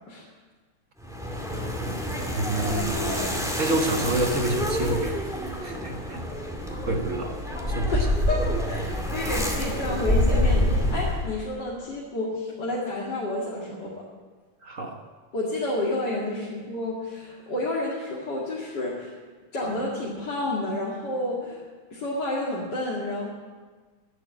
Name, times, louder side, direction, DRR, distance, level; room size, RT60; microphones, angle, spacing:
sound 1, 1.0-11.4, left 1 dB, ahead, 1.9 m, -27 dB
voice 1, 2.3-5.3 5.6-6.2 6.9-7.4 7.7-8.1 14.6-15.0, right 2 dB, 45° right, 3 dB, 1.4 m, -28 dB
voice 2, 7.9-14.0 15.3-19.1 19.5-21.6 21.9-23.3, left 1 dB, 55° left, -6 dB, 2.8 m, -30 dB
12.0 x 10.5 x 8.7 m, 1.4 s
omnidirectional pair, 2.2 m